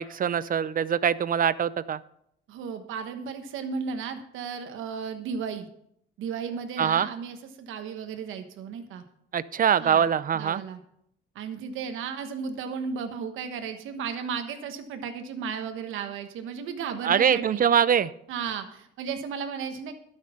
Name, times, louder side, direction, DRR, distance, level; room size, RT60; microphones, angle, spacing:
voice 1, 0.0-2.0 6.8-7.1 9.3-10.6 17.0-18.1, right 8 dB, 45° right, 17 dB, 0.5 m, -23 dB
voice 2, 2.5-5.7 6.2-9.0 9.8-10.0 10.3-10.8 11.3-17.6 18.3-19.9, right 6 dB, 85° right, 7 dB, 1.3 m, -34 dB
12.0 x 6.6 x 5.7 m, 0.72 s
cardioid pair, 90°, 20 cm